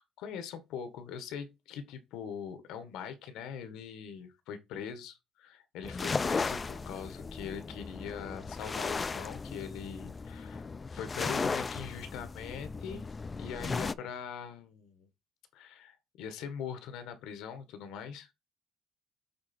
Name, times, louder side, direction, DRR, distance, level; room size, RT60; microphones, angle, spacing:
voice 1, 0.0-5.1 5.4-13.1 13.4-15.1 15.5-18.3, left 7 dB, 85° left, 1.4 m, -42 dB
sound 1, 5.8-13.9, left 4 dB, 20° left, 0.4 m, -36 dB
8.6 x 3.7 x 4.4 m
cardioid pair, 155°, 0 cm